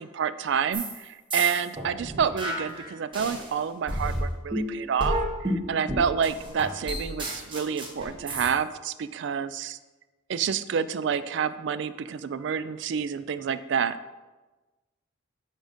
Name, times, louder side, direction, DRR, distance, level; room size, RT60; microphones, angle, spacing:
voice 1, 0.0-9.8 10.3-14.0, right 7 dB, 60° right, 14 dB, 0.3 m, -28 dB
sound 1, 0.7-1.0 1.3-3.5 3.9-8.5, right 1 dB, 25° right, 1.0 m, -31 dB
7.3 x 3.8 x 5.0 m, 1.2 s
head